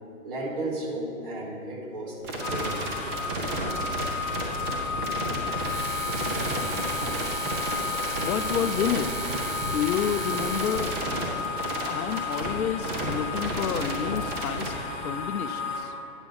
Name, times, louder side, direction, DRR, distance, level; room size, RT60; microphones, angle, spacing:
voice 1, 0.2-2.9, right 2 dB, 40° right, -1 dB, 1.5 m, -34 dB
sound 1, 2.2-14.7, right 1 dB, 15° right, 0.7 m, -32 dB
sound 2, 2.4-15.8, left 5 dB, 30° left, 1.7 m, -33 dB
sound 3, 5.6-11.1, right 4 dB, 65° right, 1.3 m, -37 dB
voice 2, 8.2-9.3 9.7-10.9 11.9-14.7 15.0-15.9, left 8 dB, 80° left, 10 dB, 0.5 m, -29 dB
9.0 x 6.9 x 4.0 m, 2.7 s
hypercardioid pair, 145°, 42 cm